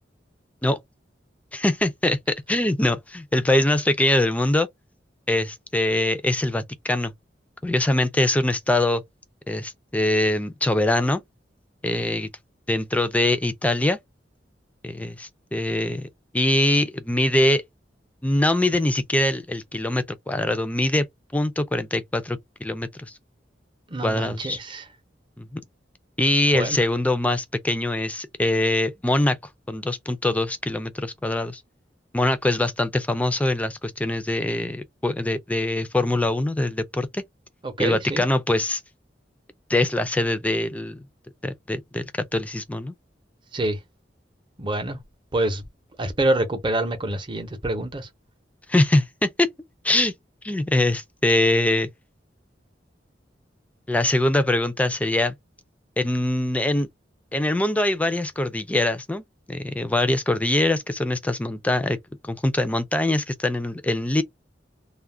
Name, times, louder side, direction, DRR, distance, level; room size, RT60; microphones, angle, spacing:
voice 1, 1.5-4.7 5.3-7.1 7.6-9.0 9.5-11.2 11.8-12.3 12.7-14.0 14.8-16.1 16.3-17.6 18.2-21.1 21.3-23.1 24.0-24.6 25.4-25.6 26.2-29.4 29.7-31.6 32.1-37.2 37.8-38.8 39.7-41.0 41.4-42.0 42.3-42.9 48.7-49.5 49.8-50.1 50.4-51.9 53.9-55.3 56.0-56.9 57.3-62.0 62.2-64.2, left 1 dB, 10° left, 0.4 m, -23 dB
voice 2, 23.9-24.9 26.5-26.8 37.6-38.2 43.5-43.8 44.6-45.0 45.3-45.7 46.0-48.1, right 1 dB, 25° right, 0.7 m, -26 dB
2.4 x 2.1 x 3.2 m
head